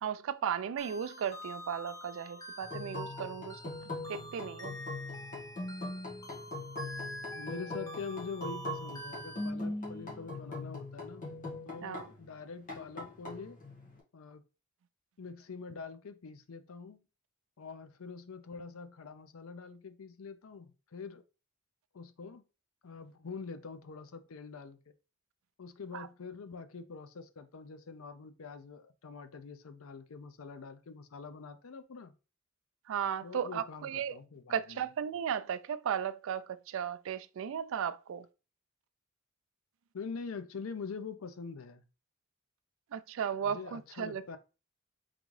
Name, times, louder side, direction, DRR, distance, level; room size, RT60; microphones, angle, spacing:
voice 1, 0.0-3.6 4.1-4.8 11.8-12.1 25.9-26.1 32.9-34.2 34.5-38.3 42.9-44.4, right 8 dB, 65° right, 0.3 m, -35 dB
sound 1, 0.8-9.5, equal, 15° left, 0.6 m, -46 dB
sound 2, 2.6-12.3 12.7-14.0, left 2 dB, 40° left, 1.5 m, -41 dB
voice 2, 7.3-11.3 11.7-13.6 14.1-14.4 15.2-17.0 17.6-21.2 21.9-22.4 22.8-24.9 25.6-32.1 33.2-34.8 39.9-41.8 43.4-44.4, left 4 dB, 75° left, 0.5 m, -45 dB
3.8 x 3.5 x 3.2 m
head